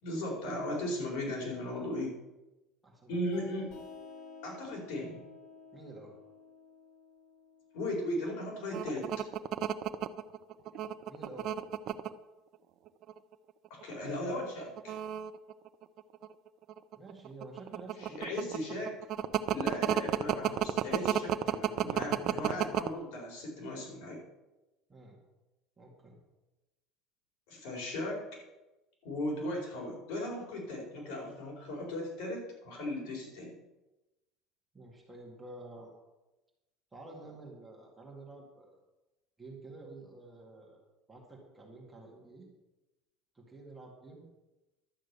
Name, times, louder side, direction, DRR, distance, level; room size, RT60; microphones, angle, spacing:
voice 1, 0.0-2.1 3.1-3.7 4.4-5.2 7.7-9.1 13.7-14.9 18.0-19.0 19.5-24.2 27.5-28.4 29.0-33.6, left 1 dB, 70° left, -1 dB, 4.5 m, -37 dB
voice 2, 2.8-3.2 5.7-6.1 11.1-11.7 16.9-18.8 24.9-25.2 25.8-26.2 34.7-35.9 36.9-38.8 39.4-40.8 41.1-42.5 43.3-44.2, right 2 dB, 10° right, -2 dB, 2.0 m, -50 dB
sound 1, 3.3-8.7, left 4 dB, 45° left, 2.9 m, -52 dB
sound 2, 8.7-12.1 12.9-13.3 13.7-13.8 14.6-16.3 16.7-22.9, right 11 dB, 40° right, 0.6 m, -31 dB
11.5 x 6.4 x 8.1 m, 1.0 s
cardioid pair, 175°, 0 cm